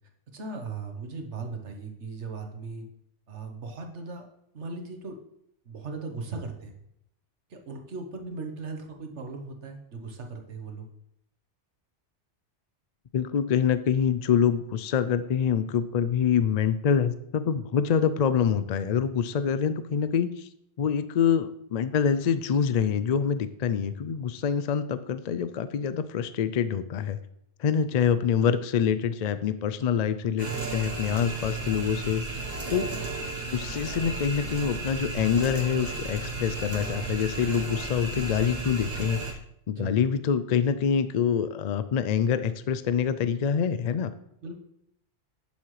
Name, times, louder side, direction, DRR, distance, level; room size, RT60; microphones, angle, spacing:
voice 1, 0.3-2.9 3.3-4.3 4.5-5.2 5.6-6.8 7.5-10.8 27.9-28.0 39.7-39.9 44.4-44.6, right 3 dB, 75° right, 3 dB, 1.5 m, -38 dB
voice 2, 13.1-20.5 20.8-27.2 27.6-32.4 32.7-32.9 33.5-39.2 39.7-44.1, left 7 dB, 65° left, 12 dB, 0.4 m, -26 dB
sound 1, 30.4-39.3, right 3 dB, 40° right, 1.2 m, -34 dB
11.0 x 7.2 x 3.2 m, 0.76 s
omnidirectional pair, 1.2 m